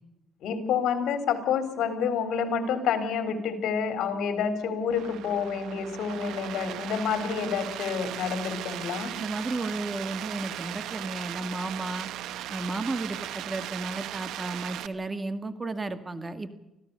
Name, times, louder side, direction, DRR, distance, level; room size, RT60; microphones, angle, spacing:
voice 1, 0.4-9.1, left 6 dB, 80° left, 10 dB, 3.7 m, -28 dB
sound 1, 4.9-14.9, right 12 dB, 85° right, 1.1 m, -37 dB
voice 2, 9.2-12.1 12.5-16.5, right 2 dB, 25° right, 11 dB, 2.1 m, -33 dB
25.5 x 16.0 x 6.8 m, 0.89 s
cardioid pair, 90°, 0 cm